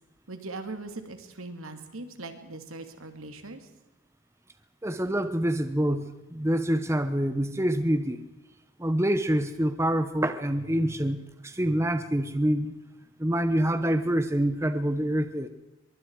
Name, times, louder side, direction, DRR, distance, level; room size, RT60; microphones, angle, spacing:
voice 1, 0.3-3.7, right 2 dB, 80° right, 7 dB, 2.6 m, -40 dB
voice 2, 4.8-8.2 8.8-12.7 13.2-15.5, right 1 dB, 15° right, 10 dB, 0.9 m, -26 dB
24.0 x 23.0 x 4.7 m, 0.95 s
head